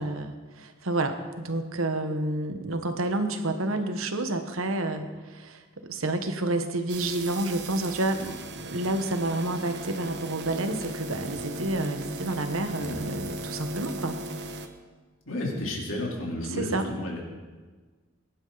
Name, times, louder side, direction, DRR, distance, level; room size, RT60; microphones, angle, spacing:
voice 1, 0.0-14.2 16.6-16.8, right 2 dB, 75° right, 7 dB, 1.3 m, -29 dB
sound 1, 6.9-14.7, right 1 dB, 55° right, 1.1 m, -37 dB
voice 2, 15.2-17.2, left 1 dB, 65° left, -2 dB, 3.5 m, -32 dB
21.5 x 11.0 x 4.0 m, 1.4 s
head